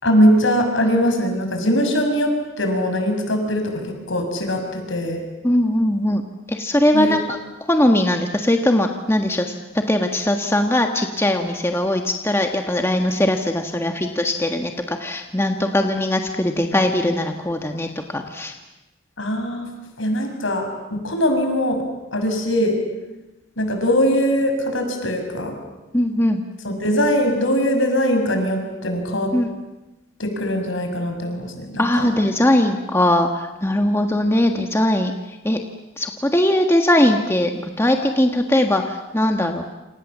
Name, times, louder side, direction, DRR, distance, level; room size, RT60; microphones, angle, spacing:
voice 1, 0.0-5.2 6.9-7.2 19.2-21.8 22.1-22.8 23.6-25.5 26.6-29.3 30.2-32.1, equal, 65° left, 4 dB, 6.4 m, -21 dB
voice 2, 5.4-6.2 6.5-7.4 7.7-9.5 9.9-18.5 25.9-26.4 29.3-29.5 31.8-35.1 35.4-35.6 36.0-39.6, left 1 dB, 10° left, 4 dB, 1.5 m, -20 dB
28.5 x 28.0 x 7.4 m, 1.0 s
head